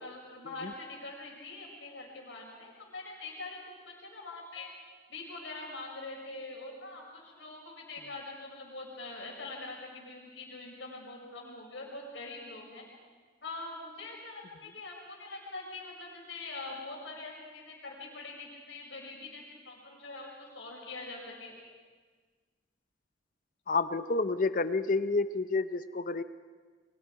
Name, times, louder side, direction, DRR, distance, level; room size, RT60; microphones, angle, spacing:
voice 1, 0.0-3.6 3.9-12.8 13.4-21.5, left 3 dB, 70° left, -1 dB, 5.1 m, -44 dB
voice 2, 23.7-26.2, left 3 dB, 45° left, 12 dB, 0.6 m, -29 dB
28.0 x 23.0 x 4.8 m, 1.5 s
head